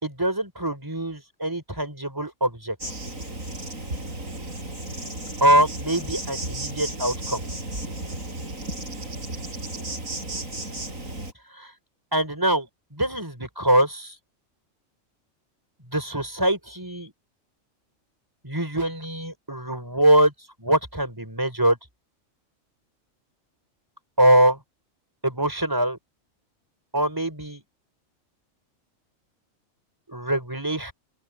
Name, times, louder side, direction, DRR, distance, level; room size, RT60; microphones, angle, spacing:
voice 1, 0.0-2.7 5.4-7.4 11.5-11.7 12.1-14.1 15.9-17.1 18.4-20.3 20.6-21.8 24.2-24.6 25.2-26.0 26.9-27.6 30.1-30.9, right 1 dB, 15° right, 4.7 m, -23 dB
Insect, 2.8-11.3, right 2 dB, 80° right, 7.3 m, -34 dB
open air
omnidirectional pair, 1.4 m